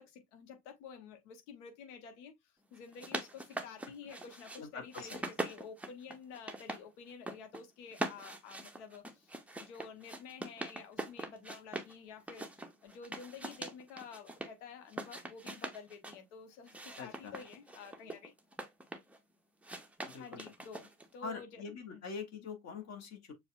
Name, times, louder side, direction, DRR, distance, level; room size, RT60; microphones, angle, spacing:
voice 1, 0.0-12.5 12.8-18.3 20.1-21.6 21.9-22.0, left 6 dB, 65° left, 1.2 m, -50 dB
sound 1, 2.8-4.6 4.9-6.8 7.1-7.6 7.9-11.9 12.3-14.5 14.9-16.2 16.7-19.2 19.6-21.1, right 2 dB, 5° right, 0.5 m, -42 dB
voice 2, 4.6-5.2 17.0-17.4 20.0-20.5 21.2-23.3, left 5 dB, 45° left, 1.2 m, -44 dB
6.8 x 2.3 x 2.5 m
figure-of-eight pair, 60°, 39 cm